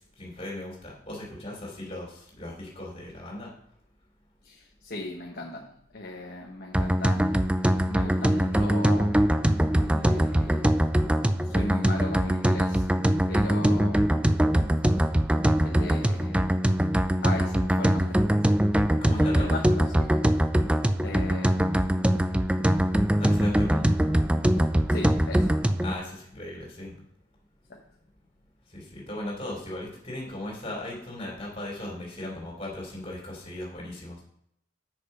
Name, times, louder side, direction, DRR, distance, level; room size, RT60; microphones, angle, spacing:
voice 1, 0.0-3.5 19.0-19.6 23.2-23.9 25.8-27.0 28.7-34.2, left 1 dB, 30° left, -2 dB, 3.6 m, -37 dB
voice 2, 4.4-5.7 5.9-7.4 7.8-9.1 9.8-10.6 11.5-12.9 13.3-14.1 15.6-16.4 17.2-18.2 19.4-20.2 21.0-21.8 24.9-25.5 27.7-27.8, left 2 dB, 50° left, -2 dB, 1.3 m, -37 dB
sound 1, 6.7-25.9, right 1 dB, 5° right, 0.4 m, -23 dB
7.8 x 6.6 x 5.5 m, 0.73 s
head